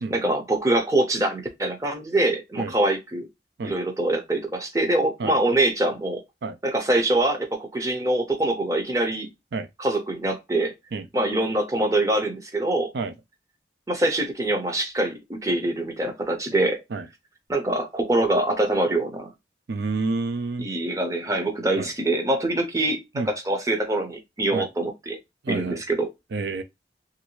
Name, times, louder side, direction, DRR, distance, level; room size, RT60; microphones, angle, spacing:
voice 1, 0.1-3.3 3.6-6.2 6.6-9.3 9.8-10.7 11.1-12.9 13.9-16.8 17.5-19.3 20.6-25.2 25.5-26.1, right 1 dB, 20° right, 0.6 m, -24 dB
voice 2, 19.7-20.7 21.8-21.9 23.2-23.3 24.5-24.7 25.4-25.8 26.3-26.6, right 3 dB, 70° right, 0.4 m, -28 dB
3.1 x 2.6 x 2.9 m
head